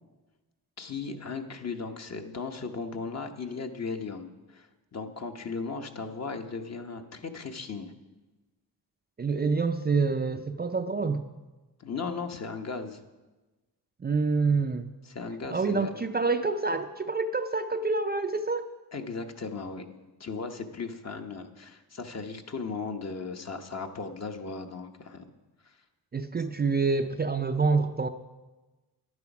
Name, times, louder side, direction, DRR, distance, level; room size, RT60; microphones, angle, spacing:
voice 1, 0.8-7.9 11.8-13.0 15.1-15.9 18.9-19.8 20.2-25.2 25.6-25.8, left 4 dB, 40° left, 6 dB, 1.0 m, -37 dB
voice 2, 9.2-11.2 14.0-14.9 15.5-18.7 26.1-28.1, right 4 dB, 25° right, 7 dB, 0.4 m, -27 dB
11.0 x 9.5 x 6.0 m, 1.2 s
cardioid pair, 95°, 40 cm